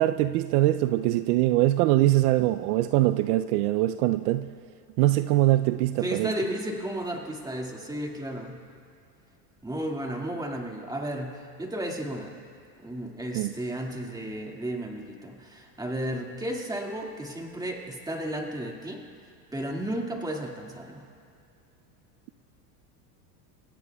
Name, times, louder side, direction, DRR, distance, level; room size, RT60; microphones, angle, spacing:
voice 1, 0.0-4.5 5.0-6.3 13.3-13.5, right 15 dB, 65° right, 13 dB, 0.6 m, -23 dB
voice 2, 6.0-8.6 9.6-12.3 12.8-19.0 19.5-21.0, right 1 dB, 10° right, 1 dB, 2.0 m, -33 dB
29.5 x 16.0 x 2.3 m, 2.5 s
supercardioid pair, 110°, 49 cm